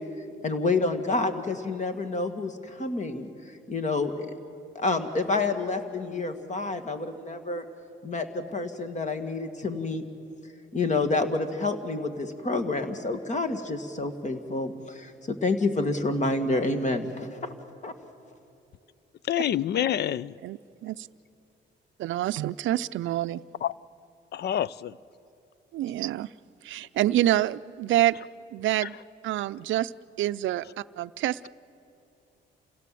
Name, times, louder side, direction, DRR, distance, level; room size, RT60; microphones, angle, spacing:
voice 1, 0.4-4.3 4.8-7.6 8.0-10.0 10.7-17.5 17.8-17.9, left 3 dB, 35° left, 2.0 m, -28 dB
voice 2, 19.3-20.4 23.6-23.7 24.3-25.0 28.8-28.9, left 11 dB, 55° left, 0.5 m, -27 dB
voice 3, 20.4-21.0 22.0-23.4 25.7-26.3 26.6-28.2 28.5-29.0 29.2-29.9 30.2-31.5, right 14 dB, 75° right, 0.5 m, -27 dB
27.5 x 16.5 x 7.7 m
cardioid pair, 90°, 20 cm